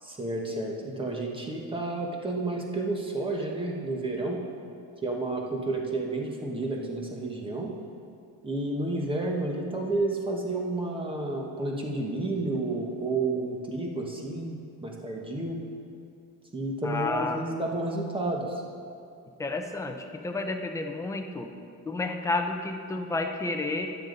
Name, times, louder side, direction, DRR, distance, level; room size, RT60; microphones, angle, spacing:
voice 1, 0.0-4.4 5.0-7.7 8.4-15.6 16.5-18.6, right 2 dB, 15° right, 0 dB, 1.3 m, -31 dB
voice 2, 16.8-17.4 19.4-21.5 21.8-23.9, left 3 dB, 10° left, 3 dB, 0.6 m, -31 dB
13.0 x 9.3 x 4.0 m, 2.5 s
cardioid pair, 160°, 34 cm